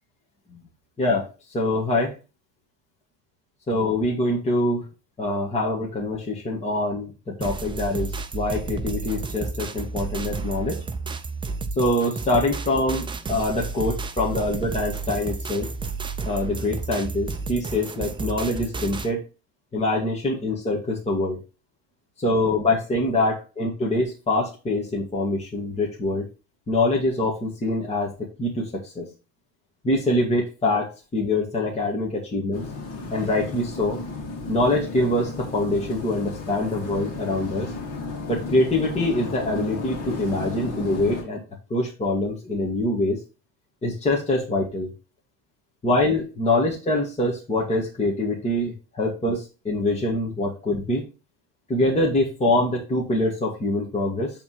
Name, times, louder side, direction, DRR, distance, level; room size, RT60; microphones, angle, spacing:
voice 1, 1.5-2.1 3.7-4.9 5.2-10.8 11.8-15.7 16.2-19.2 19.7-21.4 22.2-26.3 26.7-28.1 28.4-29.1 29.8-32.7 33.1-34.0 34.5-37.7 38.3-41.4 41.7-43.2 43.8-44.9 45.8-51.0 51.7-54.3, left 2 dB, 15° left, -2 dB, 1.7 m, -24 dB
sound 1, 7.4-19.1, right 4 dB, 15° right, 0.5 m, -32 dB
sound 2, 32.5-41.2, left 3 dB, 40° left, 2.3 m, -34 dB
8.5 x 3.7 x 4.7 m, 0.31 s
cardioid pair, 135°, 40 cm